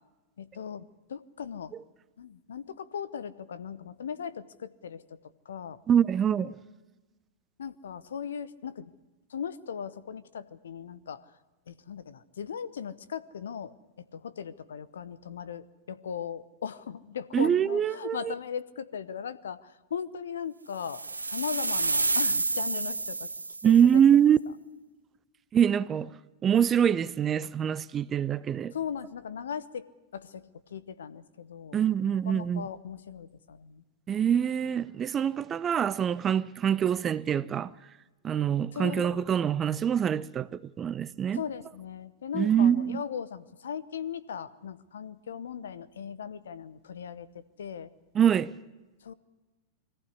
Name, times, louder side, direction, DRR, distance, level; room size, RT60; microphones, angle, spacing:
voice 1, 0.4-1.7 2.2-5.2 5.4-5.8 7.6-8.9 9.3-11.3 11.7-13.7 14.1-21.0 21.3-23.3 23.6-23.7 28.7-29.9 30.1-31.8 32.3-33.8 38.7-39.3 41.3-47.9 49.0-49.1, left 7 dB, 65° left, 0.9 m, -38 dB
voice 2, 5.9-6.6 17.3-18.3 23.6-24.4 25.5-26.1 26.4-28.7 31.7-32.7 34.1-37.7 38.2-41.4 42.3-43.0 48.1-48.5, right 8 dB, 25° right, 0.6 m, -24 dB
sound 1, 20.8-23.9, right 3 dB, 80° right, 0.9 m, -29 dB
21.5 x 15.0 x 9.8 m
figure-of-eight pair, 95°, 0 cm